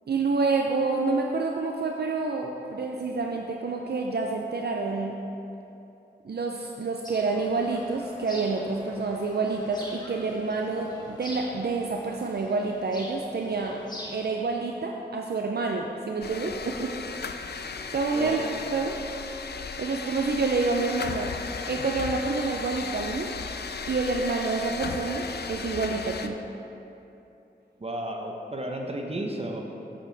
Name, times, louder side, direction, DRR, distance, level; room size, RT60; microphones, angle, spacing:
voice 1, 0.1-5.2 6.2-13.8 14.1-17.0 17.5-19.0 19.8-21.3 21.7-23.3 23.9-26.4, right 3 dB, 65° right, 1 dB, 0.5 m, -28 dB
sound 1, 7.0-14.4, left 1 dB, 25° left, 1.2 m, -45 dB
sound 2, 16.2-26.3, left 5 dB, 65° left, 0.4 m, -35 dB
voice 2, 18.1-18.5 27.8-29.6, right 1 dB, 35° right, 1 dB, 0.9 m, -33 dB
8.5 x 7.5 x 3.3 m, 2.9 s
wide cardioid pair, 80°, 18 cm